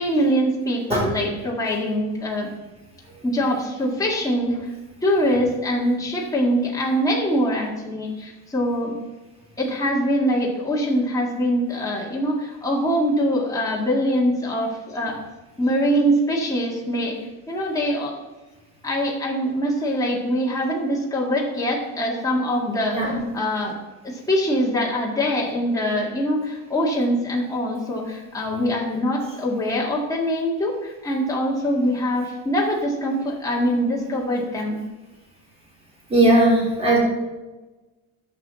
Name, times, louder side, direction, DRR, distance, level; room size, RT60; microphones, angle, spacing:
voice 1, 0.0-2.5 3.2-4.7 5.0-9.0 9.6-15.2 15.6-17.2 17.5-18.2 18.8-23.8 24.0-34.8, equal, 10° left, -4 dB, 1.8 m, -23 dB
voice 2, 36.1-37.0, right 1 dB, 15° right, -4 dB, 3.7 m, -17 dB
11.0 x 7.4 x 4.1 m, 1.2 s
cardioid pair, 155°, 35 cm